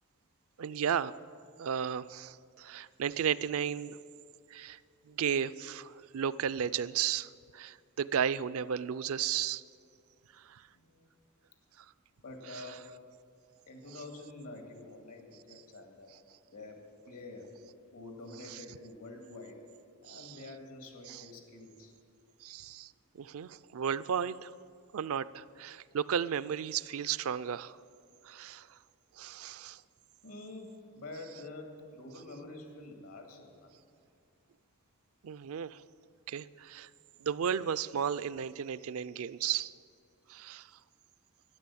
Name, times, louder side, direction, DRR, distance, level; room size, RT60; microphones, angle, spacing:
voice 1, 0.6-1.1 1.6-4.0 4.5-4.8 5.1-9.6 10.3-10.7 11.8-11.9 12.5-12.6 18.5-18.6 20.1-20.4 21.1-21.3 22.4-24.5 24.9-27.8 28.2-28.8 29.2-29.8 35.2-35.8 36.3-36.9 37.2-39.7 40.3-40.8, right 8 dB, 65° right, 16 dB, 0.4 m, -34 dB
voice 2, 10.7-11.1 12.2-12.9 13.7-16.1 16.5-17.6 17.9-19.6 20.0-21.9 30.2-33.8, left 2 dB, 80° left, 4 dB, 2.2 m, -47 dB
13.0 x 10.5 x 8.5 m, 2.2 s
head